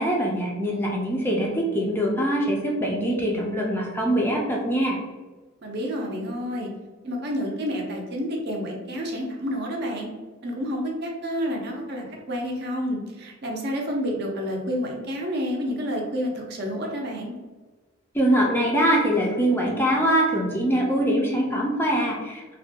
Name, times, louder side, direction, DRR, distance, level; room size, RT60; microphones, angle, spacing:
voice 1, 0.0-5.0 18.1-22.6, right 1 dB, 10° left, -2 dB, 0.3 m, -23 dB
voice 2, 5.6-6.7 7.0-10.1 10.4-17.3, equal, 50° right, 0 dB, 0.5 m, -29 dB
2.4 x 2.2 x 2.7 m, 1.3 s
head